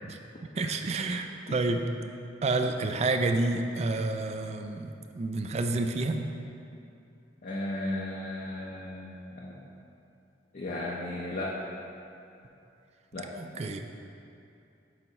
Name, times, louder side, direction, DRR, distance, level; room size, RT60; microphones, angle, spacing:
voice 1, 0.0-1.9 2.4-6.2 13.4-13.8, right 2 dB, 35° right, 6 dB, 0.4 m, -29 dB
voice 2, 7.4-9.6 10.5-11.6 13.1-13.3, left 1 dB, 50° left, -4 dB, 0.6 m, -35 dB
8.0 x 3.0 x 5.2 m, 2.6 s
head